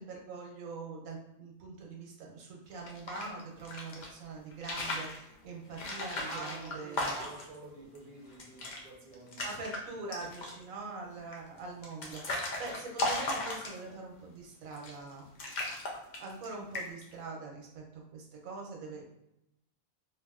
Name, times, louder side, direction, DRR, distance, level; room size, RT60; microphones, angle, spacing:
voice 1, 0.0-7.1 9.4-15.3 16.2-19.0, right 3 dB, 90° right, 0 dB, 1.2 m, -43 dB
sound 1, 2.7-4.1 4.5-5.2 5.7-7.6 7.9-8.0 8.3-8.8 9.1-9.8 10.1-10.6 11.3-14.0 14.7-15.1 15.4-16.5 16.7-17.1, left 2 dB, 55° left, 0.5 m, -36 dB
voice 2, 6.0-9.5 10.4-10.5 10.8-10.9, right 3 dB, 45° right, -1 dB, 0.6 m, -48 dB
3.4 x 2.5 x 2.4 m, 0.83 s
omnidirectional pair, 1.4 m